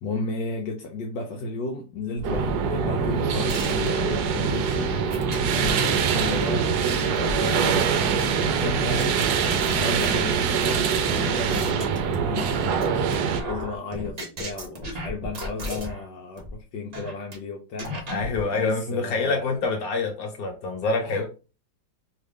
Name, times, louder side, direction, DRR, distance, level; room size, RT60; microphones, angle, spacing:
voice 1, 0.0-5.0 5.5-7.9 8.5-9.3 9.8-11.9 12.2-13.0 13.5-17.9 18.5-19.5 21.0-21.4, left 3 dB, 75° left, 1 dB, 1.3 m, -33 dB
sound 1, 2.1-10.4, equal, 10° right, 0.7 m, -43 dB
sound 2, 2.2-13.4, right 6 dB, 70° right, 1.0 m, -24 dB
sound 3, 3.5-4.3 5.1-6.0 6.5-8.3 9.0-9.1 9.6-10.6 11.1-12.5 12.8-13.1 13.4-16.1 16.4-16.5 16.9-17.4 17.8-18.4, equal, 55° right, 0.4 m, -35 dB
voice 2, 18.1-21.4, left 3 dB, 55° left, 1 dB, 1.4 m, -26 dB
3.2 x 2.4 x 3.4 m, 0.33 s
omnidirectional pair, 2.0 m